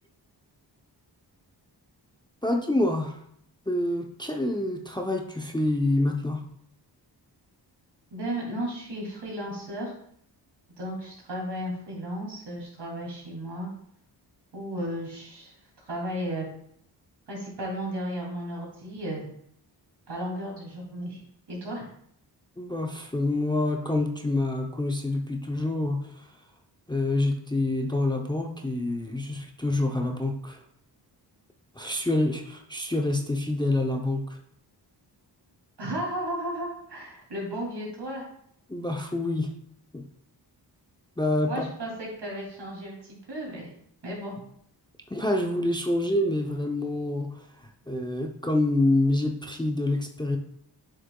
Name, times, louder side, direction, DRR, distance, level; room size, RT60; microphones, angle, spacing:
voice 1, 2.4-3.2 3.7-6.4 22.6-26.3 26.9-30.6 31.8-34.4 38.7-39.5 39.9-40.0 41.2-41.7 45.1-47.3 47.9-50.4, left 2 dB, 10° left, 3 dB, 0.6 m, -27 dB
voice 2, 8.1-9.9 10.8-13.7 14.5-15.5 15.9-16.5 17.3-19.3 20.1-21.2 21.5-21.9 35.8-38.3 41.4-43.7 44.0-44.4, right 1 dB, 65° right, -2 dB, 2.7 m, -34 dB
7.7 x 6.5 x 2.3 m, 0.68 s
wide cardioid pair, 85°, 42 cm